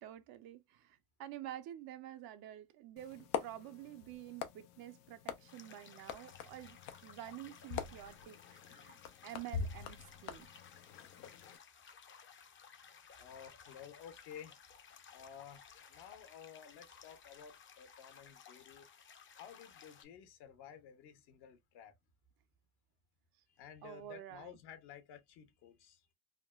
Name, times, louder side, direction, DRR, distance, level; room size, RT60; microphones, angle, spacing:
voice 1, 0.0-8.4 8.7-9.0 9.2-10.5 23.8-24.6, right 12 dB, 55° right, 0.6 m, -49 dB
sound 1, 3.0-11.6, left 7 dB, 85° left, 0.7 m, -45 dB
sound 2, 5.5-20.0, left 7 dB, 30° left, 0.6 m, -58 dB
voice 2, 13.2-14.6 15.1-15.6 15.9-18.9 19.4-21.9 23.5-26.1, left 8 dB, 65° left, 1.1 m, -54 dB
3.6 x 2.1 x 2.2 m
supercardioid pair, 85°, 43 cm